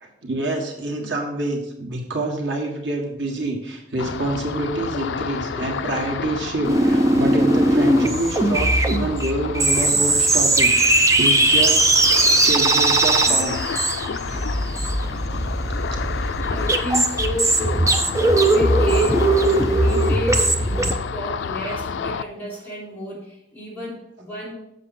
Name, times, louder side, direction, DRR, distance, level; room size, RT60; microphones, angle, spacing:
voice 1, 0.0-12.0 12.4-13.6 14.3-14.5 15.9-16.3, right 2 dB, 90° right, 0 dB, 1.7 m, -27 dB
Ocean, 4.0-22.2, left 6 dB, 80° left, 0.4 m, -30 dB
sound 1, 6.6-20.9, right 2 dB, 15° right, 0.6 m, -19 dB
voice 2, 16.5-24.5, left 1 dB, 10° left, -7 dB, 3.3 m, -31 dB
7.4 x 6.8 x 4.1 m, 0.82 s
head